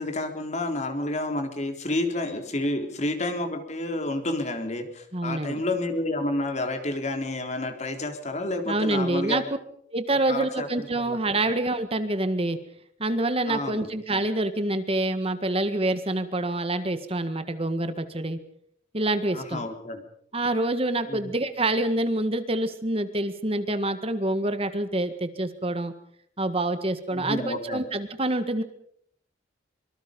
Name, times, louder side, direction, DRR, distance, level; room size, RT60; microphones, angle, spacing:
voice 1, 0.0-9.5 10.3-11.4 13.5-13.9 19.3-20.0 21.1-21.3 27.1-27.8, left 2 dB, 35° left, 5 dB, 3.8 m, -30 dB
voice 2, 5.1-5.6 8.7-9.4 9.9-12.6 13.0-18.4 18.9-19.6 20.3-25.9 26.4-28.6, right 2 dB, 30° right, 9 dB, 1.7 m, -26 dB
25.5 x 24.5 x 5.4 m, 0.65 s
head